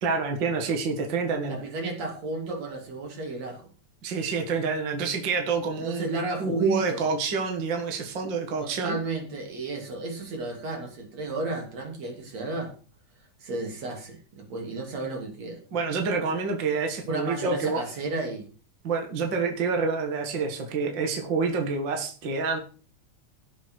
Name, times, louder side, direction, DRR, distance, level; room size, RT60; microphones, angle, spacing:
voice 1, 0.0-1.6 4.0-6.0 6.4-9.0 15.7-17.8 18.8-22.6, right 4 dB, 45° right, 3 dB, 2.1 m, -27 dB
voice 2, 1.5-3.6 5.8-7.0 8.6-12.7 13.4-15.6 17.1-18.4, right 3 dB, 60° right, 2 dB, 4.0 m, -33 dB
17.0 x 7.2 x 4.6 m, 0.38 s
omnidirectional pair, 3.4 m